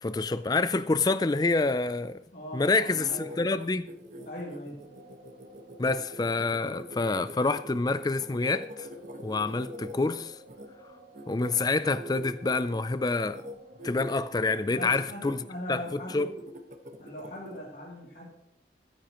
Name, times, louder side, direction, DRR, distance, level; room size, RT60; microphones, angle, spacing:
voice 1, 0.0-2.2 2.5-3.9 5.8-8.9 9.2-10.3 11.3-13.4 13.8-15.4 15.7-16.3, left 3 dB, 20° left, 0.4 m, -27 dB
voice 2, 2.3-3.3 4.2-4.8 14.7-16.3 17.0-18.3, equal, 50° left, 3.0 m, -40 dB
sound 1, 2.8-10.7 11.1-12.8 13.2-13.5 13.8-14.1 14.4-15.4 15.8-17.6, equal, 45° right, 1.3 m, -44 dB
sound 2, 4.8-14.5, equal, 70° right, 3.6 m, -53 dB
22.5 x 9.8 x 3.0 m
head